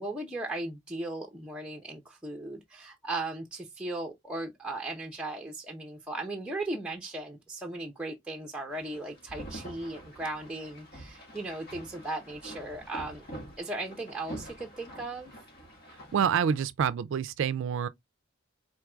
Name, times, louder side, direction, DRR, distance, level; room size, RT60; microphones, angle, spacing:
voice 1, 0.0-13.2 13.6-15.3, right 2 dB, 5° right, 0.7 m, -37 dB
sound 1, 8.7-16.6, right 1 dB, 50° left, 1.9 m, -46 dB
voice 2, 16.1-17.9, right 7 dB, 65° right, 0.3 m, -27 dB
4.6 x 4.4 x 2.3 m
head